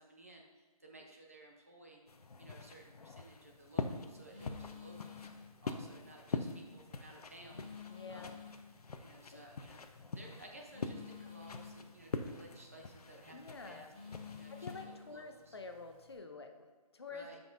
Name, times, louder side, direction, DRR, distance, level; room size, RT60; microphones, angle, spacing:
voice 1, 0.0-2.1 2.4-7.7 8.1-8.4 9.0-15.6 17.1-17.4, right 1 dB, 25° right, 0 dB, 0.6 m, -56 dB
sound 1, 2.1-14.8, left 4 dB, 80° left, 0.7 m, -44 dB
Telephone, 3.3-16.1, left 7 dB, 15° left, 1.0 m, -55 dB
voice 2, 7.9-8.4 9.3-9.4 13.3-13.9 14.5-17.3, left 4 dB, 45° left, 5 dB, 0.6 m, -48 dB
13.5 x 5.3 x 2.5 m, 1.4 s
hypercardioid pair, 175°, 19 cm